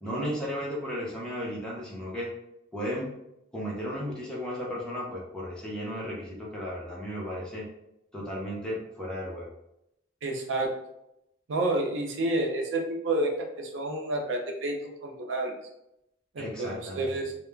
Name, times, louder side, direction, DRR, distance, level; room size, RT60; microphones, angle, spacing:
voice 1, 0.0-2.3 2.7-3.1 3.5-7.7 8.1-9.5 16.4-17.2, equal, 5° left, -5 dB, 0.5 m, -34 dB
voice 2, 10.2-10.7 11.5-14.8 15.0-15.5 16.3-17.3, right 2 dB, 70° right, 1 dB, 0.5 m, -29 dB
2.3 x 2.0 x 3.2 m, 0.82 s
head